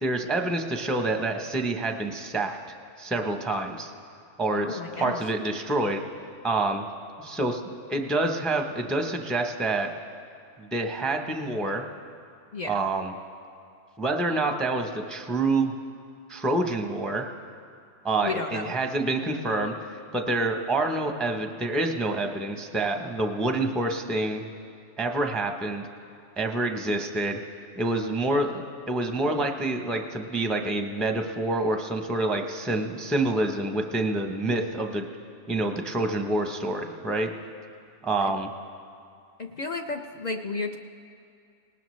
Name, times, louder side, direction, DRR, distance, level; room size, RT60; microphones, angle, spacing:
voice 1, 0.0-2.6 3.0-3.9 4.4-6.0 6.4-6.8 7.2-9.9 10.6-11.8 12.6-13.1 14.0-15.7 16.3-17.2 18.0-24.4 25.0-25.8 26.4-27.4 27.8-35.1 35.5-37.3 38.0-38.5, right 2 dB, ahead, 4 dB, 0.6 m, -27 dB
voice 2, 4.6-5.2 12.5-12.8 18.2-18.7 38.2-38.3 39.4-40.8, left 3 dB, 50° left, 4 dB, 0.5 m, -33 dB
19.0 x 18.5 x 3.2 m, 2.4 s
omnidirectional pair, 1.3 m